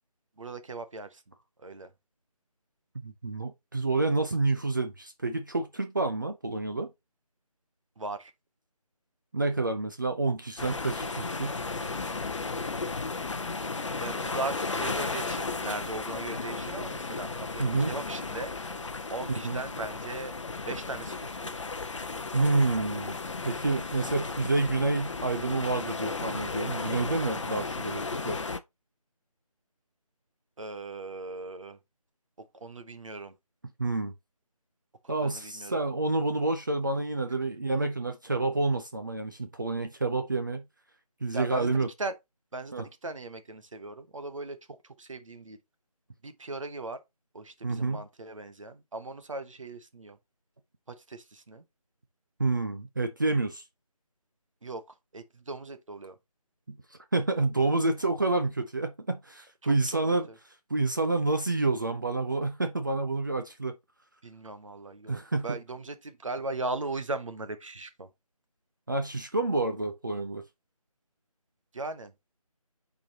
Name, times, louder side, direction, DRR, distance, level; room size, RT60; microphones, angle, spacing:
voice 1, 0.4-1.2 1.6-1.9 8.0-8.3 14.0-18.5 19.1-20.3 20.7-21.5 30.6-31.8 32.4-33.3 35.0-35.8 41.3-42.1 42.5-45.6 46.2-47.0 47.3-50.2 50.9-51.6 54.6-56.1 59.6-59.8 64.2-68.1 71.7-72.1, right 2 dB, 55° right, 1.0 m, -38 dB
voice 2, 3.0-6.9 9.3-11.6 17.6-17.9 19.4-19.6 22.3-23.1 23.5-28.4 33.8-34.1 35.1-40.6 41.2-41.9 42.7-42.9 47.6-48.0 52.4-53.6 56.7-56.8 57.1-60.3 60.7-63.7 65.1-65.4 68.9-70.4, right 3 dB, 30° right, 0.5 m, -28 dB
sound 1, 10.6-28.6, left 3 dB, 50° left, 0.7 m, -34 dB
8.5 x 4.1 x 2.8 m
figure-of-eight pair, 160°, 19 cm